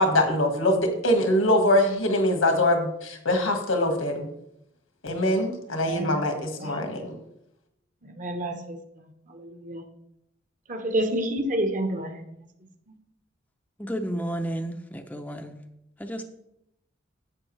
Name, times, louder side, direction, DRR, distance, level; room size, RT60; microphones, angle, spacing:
voice 1, 0.0-4.3 5.0-7.2, left 1 dB, 85° left, 4 dB, 1.9 m, -23 dB
voice 2, 5.7-6.2 6.6-6.9 8.0-9.8 10.7-12.4, right 1 dB, 40° right, 6 dB, 1.1 m, -30 dB
voice 3, 13.8-15.6 16.0-16.2, right 1 dB, 10° left, 5 dB, 0.6 m, -32 dB
10.5 x 7.9 x 3.3 m, 0.79 s
head